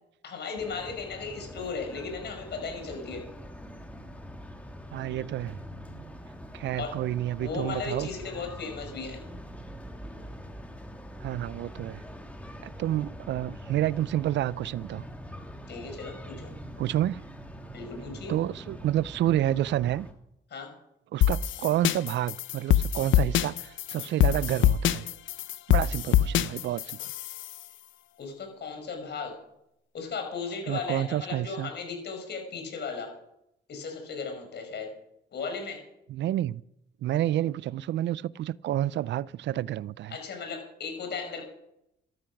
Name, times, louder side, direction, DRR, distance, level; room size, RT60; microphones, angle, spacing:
voice 1, 0.2-3.2 6.8-6.9 7.4-9.2 15.7-16.5 17.7-18.3 20.5-20.7 28.2-29.4 29.9-33.1 33.7-34.9 35.3-35.8 40.1-41.5, left 5 dB, 60° left, 5.4 m, -36 dB
sound 1, 0.6-20.1, equal, 5° left, 2.6 m, -44 dB
voice 2, 4.9-5.6 6.5-8.1 11.2-12.0 12.6-15.0 16.8-17.2 18.3-20.1 21.1-25.1 25.7-27.0 30.7-31.7 36.1-36.6 37.0-40.2, right 13 dB, 65° right, 0.5 m, -29 dB
sound 2, 21.2-27.6, left 11 dB, 75° left, 0.7 m, -24 dB
13.0 x 13.0 x 6.0 m
cardioid pair, 90°, 20 cm